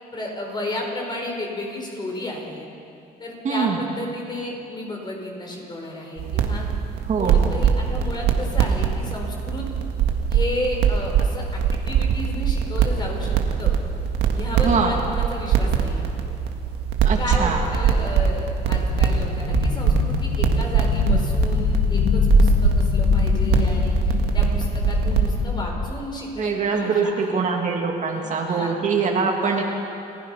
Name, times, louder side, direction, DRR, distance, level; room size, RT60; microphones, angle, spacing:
voice 1, 0.1-2.7 3.2-6.7 7.2-9.7 10.3-11.6 11.9-13.7 14.3-16.0 17.2-27.4 28.1-28.8, left 1 dB, 25° left, 0 dB, 5.6 m, -32 dB
voice 2, 3.4-3.8 7.1-7.5 14.6-15.0 17.0-17.7 26.4-29.6, right 5 dB, 45° right, 1 dB, 2.5 m, -23 dB
sound 1, 6.2-25.4, right 7 dB, 80° right, 1.9 m, -22 dB
sound 2, 17.2-25.9, left 6 dB, 75° left, 1.5 m, -24 dB
29.0 x 15.5 x 5.9 m, 2.7 s
cardioid pair, 110°, 17 cm